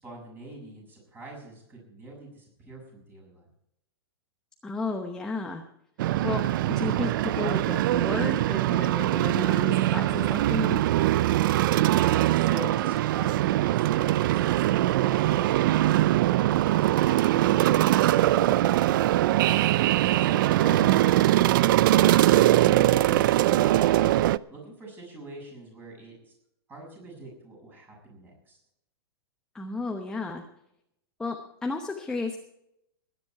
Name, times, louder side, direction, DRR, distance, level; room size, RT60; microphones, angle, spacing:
voice 1, 0.0-3.5 12.2-19.6 24.5-26.3 26.7-28.6, right 1 dB, 15° right, -1 dB, 6.7 m, -45 dB
voice 2, 4.6-5.6 6.2-10.9 20.6-20.9 29.5-30.4 31.2-32.4, left 3 dB, 5° left, 3 dB, 0.9 m, -33 dB
sound 1, 6.0-24.4, right 14 dB, 55° right, 0.4 m, -22 dB
19.5 x 10.0 x 4.7 m, 0.80 s
supercardioid pair, 155°, 13 cm